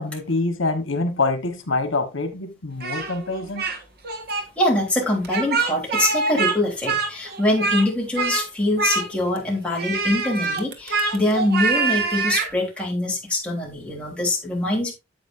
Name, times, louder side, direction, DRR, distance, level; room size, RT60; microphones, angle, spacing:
voice 1, 0.0-3.7, left 3 dB, 90° left, 1.3 m, -25 dB
Speech, 2.8-3.8 4.0-4.4 5.2-6.6 6.8-7.9 8.2-8.4 8.8-9.4 9.8-12.5, right 4 dB, 55° right, 1.4 m, -24 dB
voice 2, 4.3-14.9, left 1 dB, 5° left, 3.3 m, -24 dB
9.1 x 8.1 x 2.6 m
head